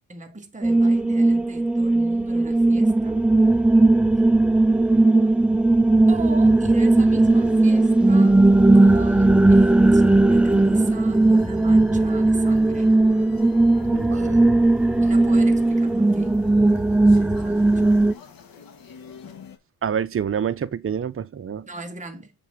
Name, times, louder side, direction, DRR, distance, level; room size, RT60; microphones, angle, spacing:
voice 1, 0.1-3.2 6.1-8.3 8.7-12.9 14.1-14.7 15.0-16.4 17.1-17.9 21.7-22.3, right 2 dB, 20° right, 1.7 m, -39 dB
sound 1, 0.6-18.1, right 2 dB, 5° right, 0.4 m, -17 dB
sound 2, 7.2-19.6, left 6 dB, 75° left, 2.1 m, -45 dB
voice 2, 13.9-14.6 19.8-21.7, right 8 dB, 40° right, 0.8 m, -27 dB
7.7 x 5.4 x 5.4 m
cardioid pair, 130°, 35 cm